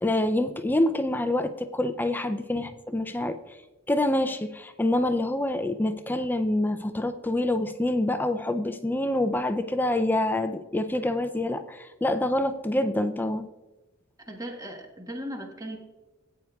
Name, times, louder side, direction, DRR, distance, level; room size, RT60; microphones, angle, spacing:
voice 1, 0.0-3.6 3.9-13.4, left 1 dB, 10° left, 8 dB, 0.4 m, -26 dB
voice 2, 14.3-15.8, equal, 15° right, 2 dB, 1.3 m, -37 dB
16.5 x 9.3 x 2.3 m, 1.1 s
head